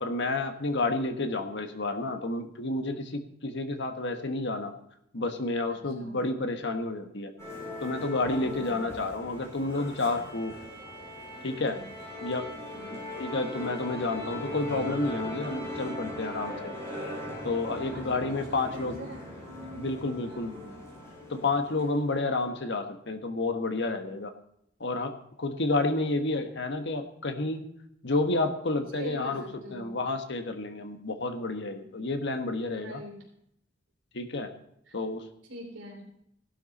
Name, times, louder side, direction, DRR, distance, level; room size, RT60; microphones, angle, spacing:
voice 1, 0.0-4.7 5.1-7.3 7.8-10.5 11.4-11.8 12.2-12.4 13.2-16.7 17.4-19.0 19.7-20.5 21.3-24.3 24.8-25.1 25.4-27.6 28.0-29.4 29.7-33.0 34.1-34.5 34.9-35.2, left 2 dB, 65° left, 6 dB, 1.4 m, -30 dB
voice 2, 5.7-6.2 8.3-8.9 11.6-11.9 12.7-13.1 17.7-19.3 20.2-20.8 29.0-30.0 30.9-31.1 32.7-33.2 34.9-35.0 35.5-36.1, right 1 dB, 70° right, -1 dB, 3.1 m, -45 dB
Musical instrument, 7.4-22.1, left 1 dB, 15° left, 6.6 m, -39 dB
16.0 x 11.5 x 4.2 m, 0.75 s
head